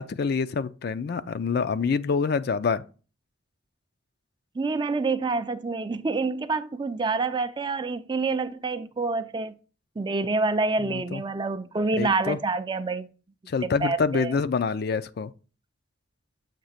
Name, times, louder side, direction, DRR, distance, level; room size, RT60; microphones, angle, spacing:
voice 1, 0.0-2.8 10.8-11.2 12.0-12.4 13.5-15.3, left 5 dB, 55° left, 0.4 m, -26 dB
voice 2, 4.6-9.6 10.0-13.1 13.6-14.3, right 3 dB, 25° right, 0.4 m, -27 dB
7.4 x 2.9 x 5.7 m
head